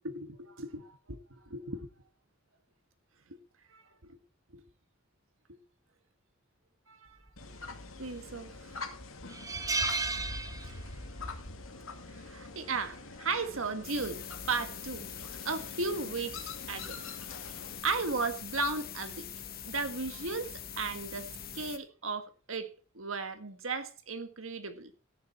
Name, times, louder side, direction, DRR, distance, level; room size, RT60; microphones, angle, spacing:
voice 1, 0.0-1.8 3.3-3.4 3.7-4.2 4.5-4.6 5.5-5.6 6.9-7.2 8.0-8.8 12.1-14.2 14.5-15.1 15.4-16.4 16.7-17.0 17.8-19.3 19.7-21.3 21.5-22.7 22.9-24.9, right 4 dB, 80° right, 1.7 m, -35 dB
sound 1, 7.4-17.8, left 3 dB, 85° left, 2.2 m, -45 dB
sound 2, 7.9-8.4 8.8-8.9 9.3-11.1 11.4-11.6 12.9-13.2, right 3 dB, 15° right, 1.1 m, -34 dB
sound 3, 13.8-21.8, left 8 dB, 50° left, 1.3 m, -43 dB
14.0 x 10.0 x 4.4 m
head